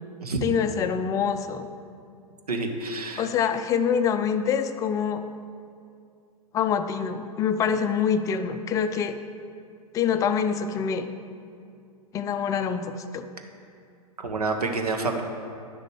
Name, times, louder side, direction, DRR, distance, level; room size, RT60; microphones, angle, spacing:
voice 1, 0.4-1.7 3.2-5.2 6.5-9.1 9.9-11.1 12.1-13.2, left 7 dB, 15° left, 8 dB, 0.4 m, -25 dB
voice 2, 2.5-3.3 14.2-15.2, right 3 dB, 75° right, 4 dB, 1.1 m, -28 dB
9.9 x 6.6 x 4.7 m, 2.4 s
figure-of-eight pair, 105°, 20 cm